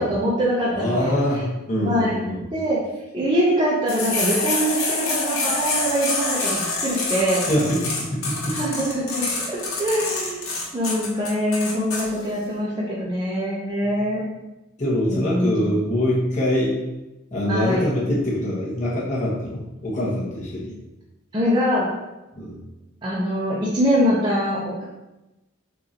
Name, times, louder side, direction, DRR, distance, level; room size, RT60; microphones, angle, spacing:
voice 1, 0.0-1.1 1.8-2.2 2.5-2.8 3.1-7.4 8.5-10.4 10.7-14.2 15.1-15.8 17.5-17.9 21.3-21.9 23.0-24.8, equal, 20° right, -7 dB, 0.7 m, -23 dB
voice 2, 0.7-2.4 7.4-8.6 14.8-16.8 17.3-20.7 22.3-22.6, left 1 dB, 35° left, -6 dB, 1.2 m, -24 dB
sound 1, 3.9-12.0, left 3 dB, 75° left, 1.0 m, -26 dB
6.6 x 2.6 x 2.9 m, 1.0 s
head